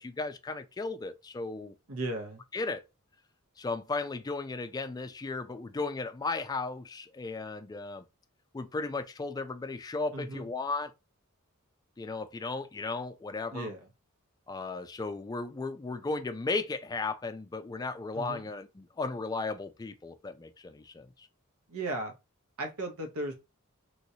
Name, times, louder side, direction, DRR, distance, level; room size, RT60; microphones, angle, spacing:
voice 1, 0.0-1.7 2.5-2.8 3.6-8.0 8.5-10.9 12.0-13.7 14.5-21.3, left 3 dB, 20° left, 0.3 m, -35 dB
voice 2, 1.9-2.4 10.1-10.5 13.5-13.9 18.1-18.5 21.7-22.1 22.6-23.3, right 2 dB, 90° right, 1.0 m, -36 dB
3.0 x 3.0 x 2.7 m
head